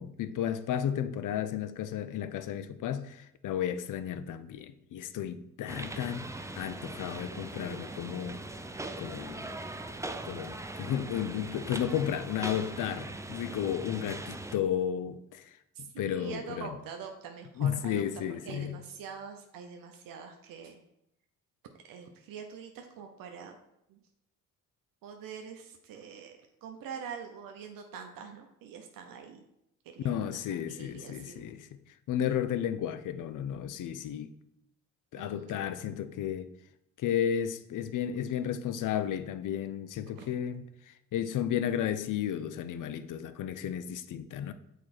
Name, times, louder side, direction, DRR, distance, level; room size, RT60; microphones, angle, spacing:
voice 1, 0.0-8.5 9.0-9.5 10.2-16.7 17.6-18.8 30.0-31.7 32.1-34.3 35.1-36.5 37.0-44.5, left 9 dB, 65° left, 0.6 m, -33 dB
sound 1, 5.7-14.6, right 2 dB, 10° right, 0.5 m, -40 dB
voice 2, 15.7-20.8 21.9-23.6 23.9-24.0 25.0-29.4 29.8-31.4 35.2-35.6 40.1-40.3, right 7 dB, 80° right, 0.7 m, -45 dB
6.5 x 4.5 x 4.2 m
supercardioid pair, 65°, 33 cm